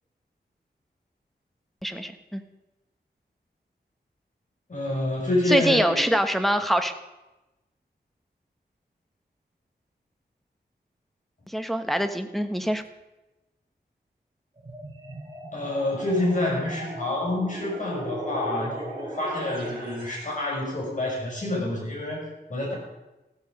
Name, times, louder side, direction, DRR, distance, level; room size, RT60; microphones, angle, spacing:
voice 1, 1.8-2.4 5.5-6.9 11.5-12.8, equal, ahead, 7 dB, 1.1 m, -24 dB
voice 2, 4.7-6.0 15.5-22.7, left 1 dB, 45° left, -2 dB, 6.4 m, -28 dB
sound 1, 14.6-20.3, right 1 dB, 25° right, 5.2 m, -38 dB
14.5 x 14.0 x 5.3 m, 1.0 s
wide cardioid pair, 120°, 18 cm